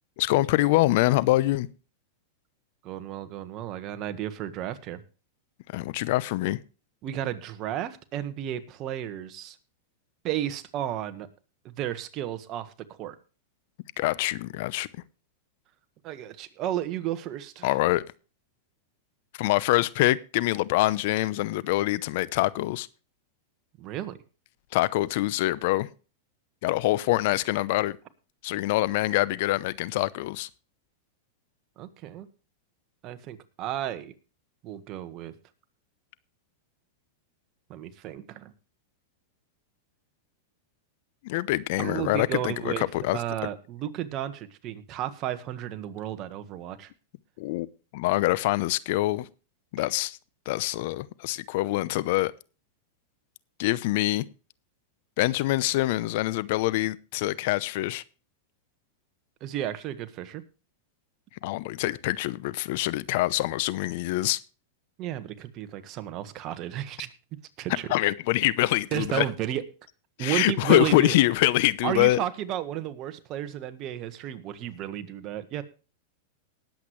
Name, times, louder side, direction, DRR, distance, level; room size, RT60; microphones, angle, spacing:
voice 1, 0.2-1.7 5.7-6.6 14.0-14.9 17.6-18.0 19.3-22.9 24.7-25.9 26.6-28.0 28.4-30.5 41.2-43.2 47.4-47.7 47.9-49.3 49.7-50.2 50.5-52.3 53.6-54.2 55.2-58.0 61.4-64.4 67.9-69.3 70.2-72.2, left 17 dB, 60° left, 0.7 m, -25 dB
voice 2, 2.8-5.0 7.0-9.6 10.2-11.3 11.6-12.7 13.0-13.2 16.0-17.7 23.8-24.2 31.8-32.3 33.0-34.1 34.6-35.3 37.7-38.5 41.8-42.8 43.1-46.9 59.4-60.4 65.0-67.1 67.6-67.9 68.9-69.6 70.2-71.2 71.8-75.6, right 12 dB, 40° right, 1.5 m, -33 dB
19.5 x 8.2 x 3.2 m
hypercardioid pair, 115°, 0 cm